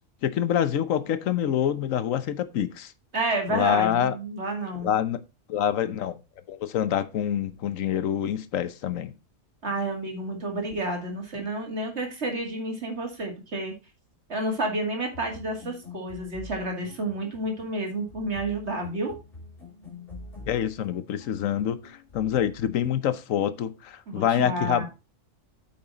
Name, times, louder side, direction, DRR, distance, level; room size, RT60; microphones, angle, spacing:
voice 1, 0.2-2.9 3.5-4.1 4.8-5.2 5.5-6.2 6.5-9.1 20.5-24.9, left 9 dB, 90° left, 1.2 m, -26 dB
voice 2, 3.1-4.9 9.6-13.7 14.3-19.1 24.1-24.9, right 2 dB, 55° right, 2.4 m, -30 dB
sound 1, 15.1-23.0, left 2 dB, 45° left, 3.7 m, -46 dB
8.7 x 5.9 x 4.0 m
omnidirectional pair, 1.3 m